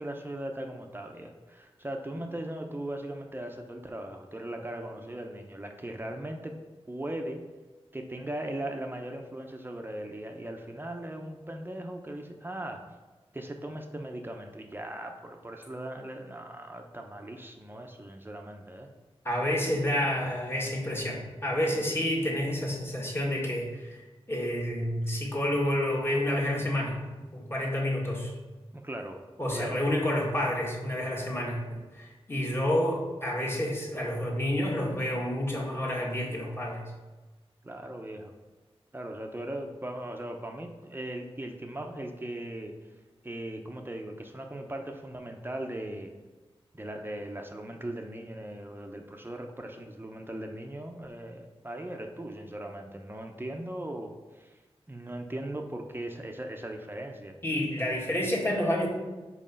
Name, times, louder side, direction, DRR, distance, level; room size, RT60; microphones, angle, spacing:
voice 1, 0.0-6.5 6.9-7.4 7.9-12.8 13.3-18.9 28.7-29.2 29.5-29.8 37.6-38.3 38.9-42.7 43.2-46.1 46.7-54.5 54.9-57.3, right 1 dB, 20° right, 3 dB, 0.7 m, -38 dB
voice 2, 19.2-24.0 24.3-27.0 27.3-28.3 29.4-36.9 57.4-58.9, left 1 dB, 25° left, -3 dB, 1.7 m, -29 dB
5.3 x 4.8 x 5.5 m, 1.2 s
wide cardioid pair, 85°, 10 cm